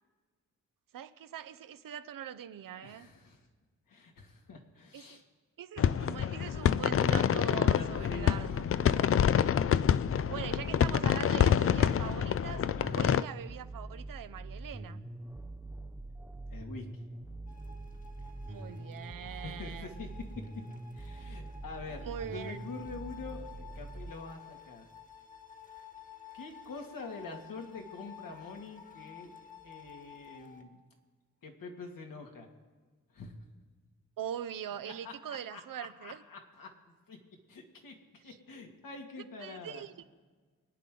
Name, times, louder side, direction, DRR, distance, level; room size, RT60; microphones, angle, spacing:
voice 1, 0.9-3.1 4.9-5.2 5.6-8.7 10.3-12.7 13.0-15.1 18.5-20.1 22.1-22.7 34.2-36.2 38.3-38.4 39.4-40.0, right 9 dB, 70° right, 0.8 m, -42 dB
voice 2, 2.8-3.5 3.9-5.2 7.6-8.6 12.8-13.1 16.5-16.9 19.2-20.1 20.9-24.9 26.3-29.3 29.6-30.8 31.4-32.5 33.1-33.4 34.9-37.2 37.5-39.9, left 3 dB, 75° left, 2.4 m, -46 dB
sound 1, 5.8-13.2, left 9 dB, 40° left, 0.4 m, -27 dB
sound 2, 7.2-24.1, right 2 dB, 5° right, 0.6 m, -44 dB
sound 3, 17.5-30.6, left 7 dB, 25° left, 1.7 m, -53 dB
24.5 x 9.3 x 3.9 m
cardioid pair, 70°, 34 cm